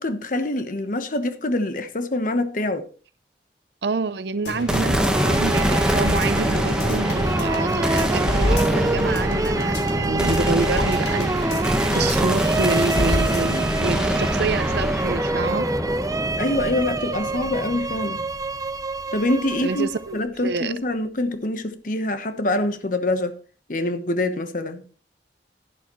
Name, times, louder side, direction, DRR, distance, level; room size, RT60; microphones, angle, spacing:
voice 1, 0.0-2.8 16.3-18.2 19.1-23.3 23.7-24.8, left 1 dB, 50° left, 1.1 m, -25 dB
voice 2, 3.8-11.6 11.9-15.7 19.6-20.7, right 4 dB, 70° right, 0.6 m, -27 dB
sound 1, 4.5-13.9 14.2-14.3, equal, 75° left, 3.0 m, -30 dB
sound 2, 4.7-19.0, equal, 5° right, 1.2 m, -24 dB
sound 3, 5.1-20.2, right 3 dB, 20° right, 0.4 m, -28 dB
11.5 x 11.0 x 3.1 m
head